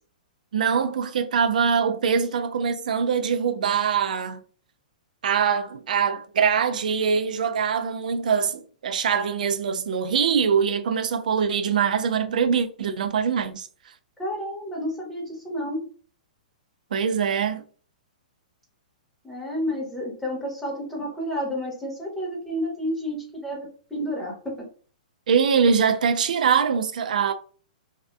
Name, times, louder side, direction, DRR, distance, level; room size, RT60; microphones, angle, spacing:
voice 1, 0.5-4.4 5.2-13.7 16.9-17.6 25.3-27.3, right 6 dB, 70° right, 0.4 m, -23 dB
voice 2, 14.2-15.8 19.2-24.3, equal, 5° left, 1.0 m, -30 dB
2.6 x 2.3 x 2.2 m
hypercardioid pair, 125°, 4 cm